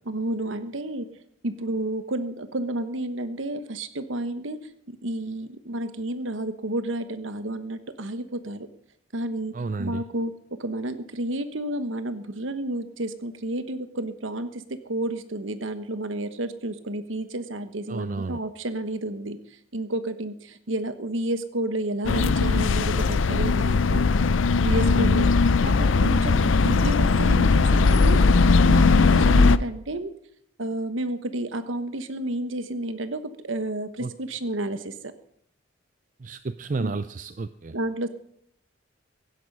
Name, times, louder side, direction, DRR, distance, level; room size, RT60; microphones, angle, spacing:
voice 1, 0.1-1.1 1.4-4.6 4.9-8.7 9.1-9.5 9.8-10.3 10.6-19.4 19.7-24.1 24.6-25.3 25.6-28.2 28.7-30.1 30.6-35.1 36.8-37.0 37.7-38.1, right 1 dB, 90° right, 11 dB, 1.2 m, -31 dB
voice 2, 9.5-10.0 17.9-18.4 24.8-25.1 34.0-34.1 36.2-37.7, right 3 dB, 40° right, 13 dB, 0.4 m, -31 dB
sound 1, 22.0-29.6, left 4 dB, 85° left, 0.5 m, -19 dB
16.0 x 11.0 x 5.4 m, 0.70 s
head